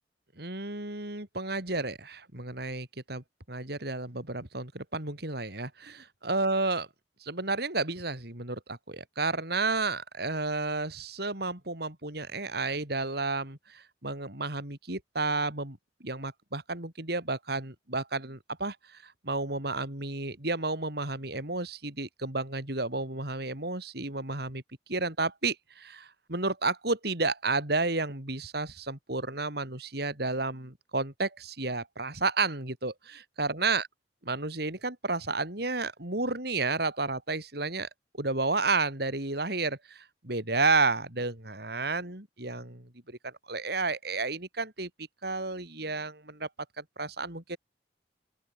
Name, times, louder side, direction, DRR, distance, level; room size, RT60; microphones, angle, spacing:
voice 1, 0.4-6.9 7.2-15.8 16.0-24.6 24.9-33.9 34.2-37.9 38.2-46.5 46.8-47.6, right 3 dB, 60° right, 4.1 m, -31 dB
open air
head